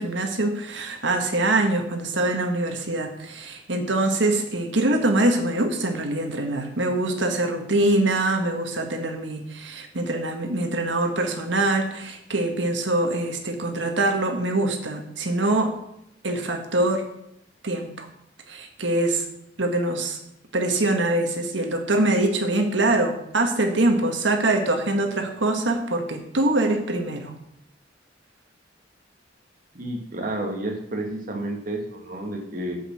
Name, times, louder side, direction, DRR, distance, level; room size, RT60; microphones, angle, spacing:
voice 1, 0.0-15.7 16.2-17.0 17.6-18.1 18.5-19.2 19.6-20.2 20.5-27.3, right 2 dB, 75° right, 4 dB, 1.7 m, -24 dB
voice 2, 29.7-32.8, right 1 dB, 50° right, 1 dB, 2.1 m, -30 dB
8.3 x 7.9 x 6.3 m, 0.77 s
head